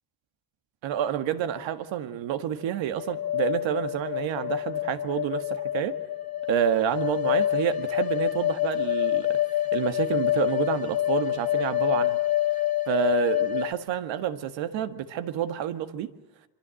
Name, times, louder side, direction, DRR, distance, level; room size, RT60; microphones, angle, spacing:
voice 1, 0.8-6.0 6.5-9.4 9.7-12.2 12.9-16.1, right 10 dB, 90° right, 1.9 m, -29 dB
sound 1, 2.9-13.7, left 13 dB, 50° left, 2.0 m, -27 dB
25.5 x 24.5 x 7.8 m
cardioid pair, 115°, 44 cm